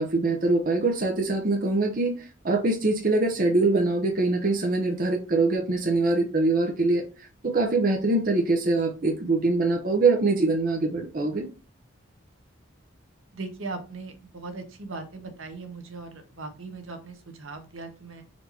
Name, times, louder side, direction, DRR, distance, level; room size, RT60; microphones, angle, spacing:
voice 1, 0.0-11.5, right 3 dB, 40° right, 2 dB, 0.7 m, -24 dB
voice 2, 13.3-18.2, right 3 dB, 80° right, 6 dB, 1.1 m, -39 dB
4.4 x 2.8 x 4.2 m, 0.33 s
head